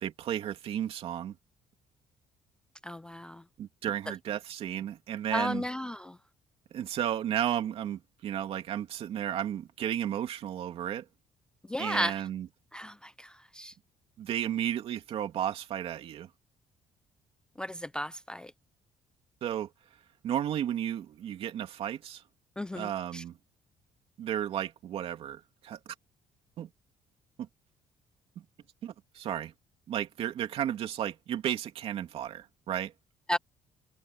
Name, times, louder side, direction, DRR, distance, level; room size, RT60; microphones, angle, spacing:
voice 1, 0.0-1.4 3.6-5.6 6.7-11.0 11.8-12.5 14.2-16.3 19.4-19.7 20.2-22.2 22.7-23.4 24.2-25.8 26.6-26.7 27.4-27.5 28.8-29.5 29.9-32.9, right 10 dB, 55° right, 2.8 m, -33 dB
voice 2, 2.8-3.4 5.3-6.2 11.7-12.2 12.7-13.7 17.6-18.5 22.6-23.2 33.3-33.4, equal, 5° left, 0.3 m, -34 dB
cardioid pair, 160°, 11 cm